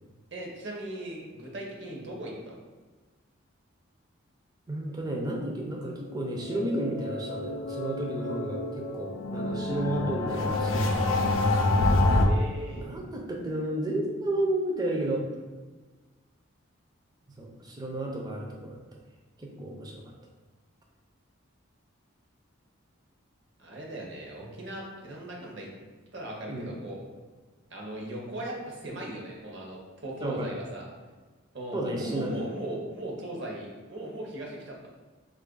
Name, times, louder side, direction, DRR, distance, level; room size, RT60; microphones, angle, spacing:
voice 1, 0.3-2.6 12.1-13.0 23.6-25.7 26.1-27.0 27.7-30.8 31.5-34.9, right 1 dB, 55° right, -1 dB, 0.7 m, -38 dB
voice 2, 4.7-11.2 12.7-15.3 17.4-18.8 19.4-20.0 26.5-26.7 30.2-30.5 31.7-32.3, right 1 dB, 20° right, 0 dB, 0.4 m, -32 dB
sound 1, 6.1-12.3, left 2 dB, 70° left, 0.4 m, -27 dB
3.0 x 2.4 x 3.7 m, 1.3 s
head